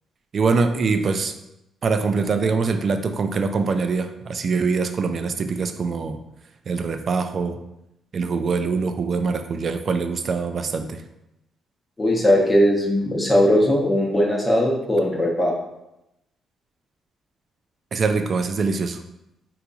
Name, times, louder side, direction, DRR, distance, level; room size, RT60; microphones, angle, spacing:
voice 1, 0.3-1.3 1.8-6.2 6.7-7.6 8.1-11.0 17.9-19.0, right 4 dB, 50° right, 8 dB, 0.3 m, -23 dB
voice 2, 12.0-15.5, equal, 20° left, -3 dB, 0.7 m, -19 dB
3.8 x 2.9 x 2.3 m, 0.86 s
cardioid pair, 90°, 0 cm